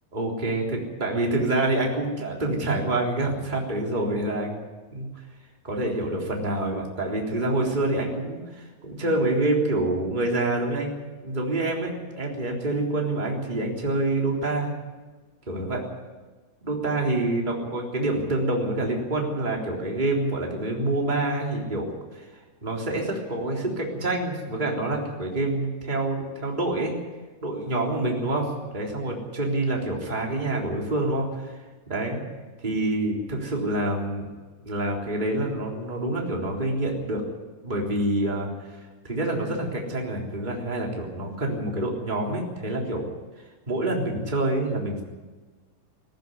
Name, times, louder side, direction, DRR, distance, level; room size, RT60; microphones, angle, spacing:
voice 1, 0.1-4.6 4.9-5.1 5.6-10.9 11.2-14.7 15.5-15.8 16.6-21.9 22.1-22.3 22.6-27.0 27.4-31.6 31.9-32.2 32.6-34.3 34.6-37.2 37.6-38.7 39.0-43.1 43.7-45.0, right 2 dB, 15° right, -1 dB, 3.5 m, -27 dB
18.5 x 16.0 x 9.6 m, 1.3 s
omnidirectional pair, 3.8 m